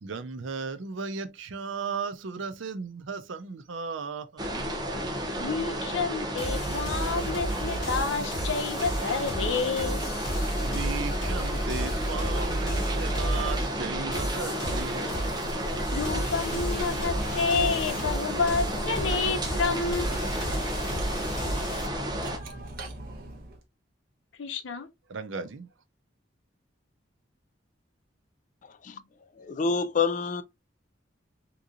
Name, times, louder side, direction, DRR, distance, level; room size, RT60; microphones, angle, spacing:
voice 1, 0.0-4.7 10.6-15.9 25.1-25.7, right 5 dB, 90° right, 0.5 m, -36 dB
sound 1, 4.4-22.4, equal, 20° right, 0.7 m, -32 dB
voice 2, 5.4-10.0 15.9-20.2 24.4-24.9, left 4 dB, 85° left, 0.6 m, -29 dB
sound 2, 6.4-21.9, right 1 dB, 25° left, 2.4 m, -33 dB
Cutlery silverware, 15.9-23.6, right 1 dB, 50° right, 0.9 m, -41 dB
voice 3, 29.4-30.4, left 5 dB, 40° left, 0.3 m, -27 dB
3.7 x 2.9 x 2.4 m
head